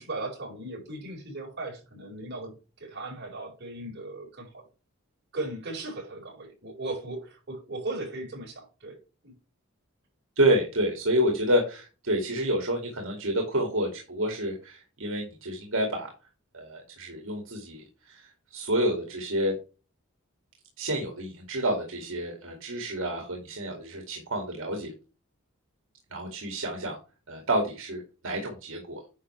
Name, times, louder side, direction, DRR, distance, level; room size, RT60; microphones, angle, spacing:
voice 1, 0.0-4.6 5.3-9.0 9.2-9.3, right 2 dB, 50° right, 4.9 m, -37 dB
voice 2, 10.4-16.1 16.5-19.6 20.8-24.9 26.1-27.0 27.3-29.0, right 1 dB, 70° right, 2.2 m, -29 dB
10.0 x 5.6 x 3.2 m
head